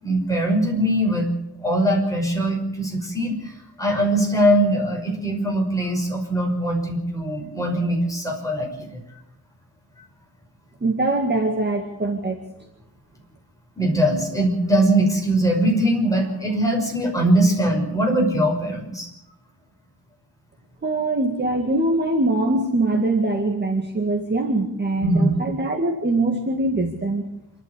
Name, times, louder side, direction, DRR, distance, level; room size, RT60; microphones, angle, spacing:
voice 1, 0.0-1.3 1.6-9.0 13.8-19.1 25.0-25.4, right 1 dB, 10° left, -1 dB, 6.0 m, -21 dB
voice 2, 10.8-12.4 20.8-27.3, right 2 dB, 25° right, 2 dB, 2.0 m, -22 dB
27.5 x 12.5 x 8.4 m, 0.80 s
wide cardioid pair, 175°, 40 cm